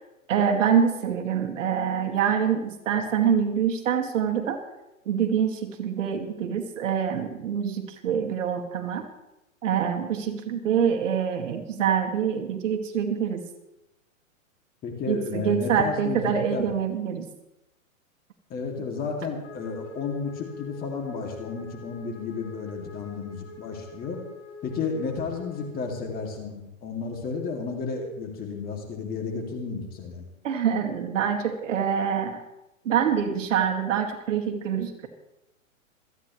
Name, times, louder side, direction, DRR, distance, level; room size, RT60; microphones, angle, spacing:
voice 1, 0.3-4.6 5.1-9.1 9.6-13.5 15.1-17.3 30.4-32.4 32.8-35.1, right 7 dB, 65° right, 4 dB, 2.2 m, -25 dB
voice 2, 14.8-16.7 18.5-24.2 24.6-30.2, left 4 dB, 20° left, 2 dB, 2.4 m, -32 dB
Wind instrument woodwind instrument, 19.4-25.8, left 4 dB, 65° left, 6.2 m, -44 dB
27.0 x 9.7 x 3.1 m, 0.94 s
hypercardioid pair, 150°, 41 cm